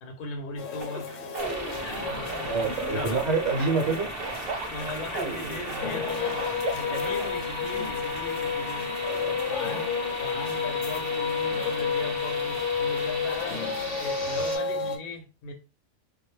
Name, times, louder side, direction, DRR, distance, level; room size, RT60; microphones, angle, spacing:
voice 1, 0.0-1.2 1.8-3.2 4.7-8.9 9.5-13.6 14.0-15.5, left 2 dB, 55° left, 0.7 m, -38 dB
sound 1, 0.6-15.0, left 6 dB, 85° left, 0.9 m, -31 dB
sound 2, 0.8-7.3, right 3 dB, 60° right, 0.7 m, -37 dB
sound 3, 1.4-14.6, equal, 15° right, 0.7 m, -37 dB
voice 2, 2.5-4.1 9.0-9.4 14.2-14.3, right 4 dB, 80° right, 1.0 m, -27 dB
2.2 x 2.1 x 3.0 m
omnidirectional pair, 1.3 m